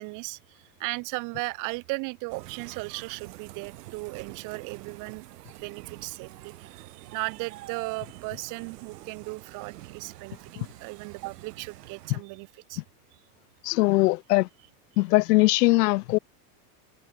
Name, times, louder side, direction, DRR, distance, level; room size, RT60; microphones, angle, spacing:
voice 1, 0.0-5.3 5.5-12.8, right 27 dB, 40° right, 4.0 m, -36 dB
sound 1, 2.3-12.2, right 16 dB, 80° right, 7.9 m, -46 dB
voice 2, 13.6-14.5 15.0-16.2, left 21 dB, 90° left, 0.7 m, -21 dB
supercardioid pair, 175°, 46 cm